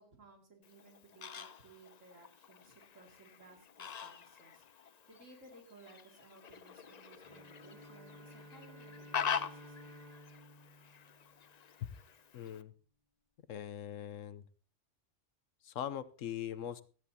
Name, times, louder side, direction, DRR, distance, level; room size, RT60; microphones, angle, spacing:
voice 1, 0.0-10.1, right 3 dB, 85° right, 2 dB, 2.9 m, -60 dB
Fowl, 0.6-12.6, left 7 dB, 45° left, 0.6 m, -44 dB
Bowed string instrument, 7.2-11.9, equal, 30° right, 2.3 m, -55 dB
voice 2, 12.3-12.7 13.5-14.4 15.6-16.8, left 10 dB, 80° left, 15 dB, 1.2 m, -41 dB
17.0 x 12.5 x 2.8 m, 0.37 s
omnidirectional pair, 1.3 m